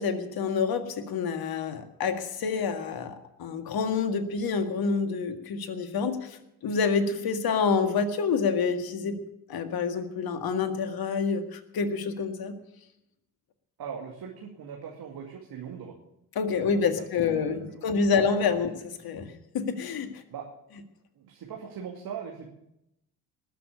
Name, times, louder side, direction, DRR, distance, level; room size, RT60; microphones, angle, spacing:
voice 1, 0.0-9.2 9.5-12.5 16.4-18.7 19.0-19.3 19.5-20.2, left 5 dB, 50° left, 8 dB, 1.9 m, -27 dB
voice 2, 13.8-15.9 16.6-18.2 20.3-20.5 21.1-22.5, right 7 dB, 50° right, 0 dB, 2.4 m, -40 dB
20.0 x 6.8 x 8.4 m, 0.85 s
figure-of-eight pair, 45°, 46 cm